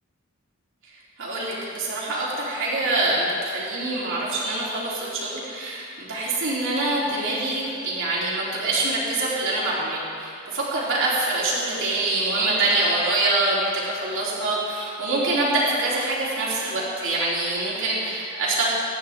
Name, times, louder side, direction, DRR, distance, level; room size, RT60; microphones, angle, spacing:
voice 1, 1.2-18.7, right 2 dB, 65° right, -6 dB, 3.3 m, -25 dB
24.0 x 10.0 x 3.6 m, 2.4 s
head